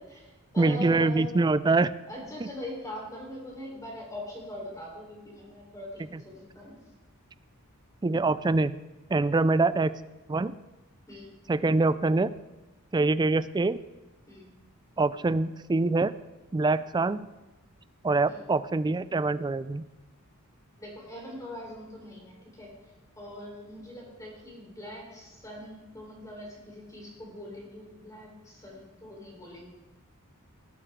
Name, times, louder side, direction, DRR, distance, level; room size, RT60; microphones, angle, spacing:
voice 1, 0.0-1.5 2.1-6.8 11.1-11.3 14.3-14.5 18.2-18.5 20.8-22.7 23.2-29.7, left 1 dB, 15° left, -2 dB, 3.7 m, -42 dB
voice 2, 0.6-1.9 6.1-6.2 8.0-8.8 9.1-9.9 10.3-10.6 11.5-12.3 12.9-13.8 15.0-16.1 16.5-17.3 18.0-19.8, right 3 dB, 20° right, 15 dB, 0.3 m, -24 dB
18.5 x 9.0 x 3.6 m, 1.1 s
head